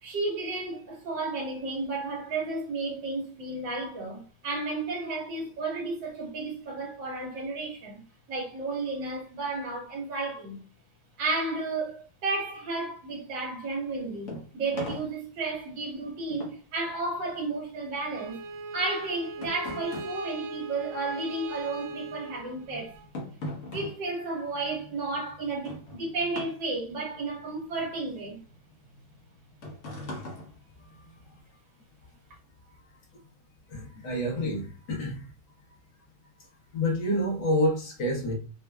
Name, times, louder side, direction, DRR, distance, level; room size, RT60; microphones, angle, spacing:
voice 1, 0.0-10.6 11.2-18.4 18.7-22.9 23.7-28.4, right 3 dB, 70° right, 1.8 m, -33 dB
sound 1, 13.8-21.4 21.7-31.4, left 1 dB, 50° left, 1.1 m, -43 dB
Bowed string instrument, 18.1-23.0, right 3 dB, 85° right, 1.4 m, -40 dB
voice 2, 33.7-35.3 36.7-38.3, equal, 75° left, 1.8 m, -28 dB
4.5 x 2.3 x 2.2 m
omnidirectional pair, 2.1 m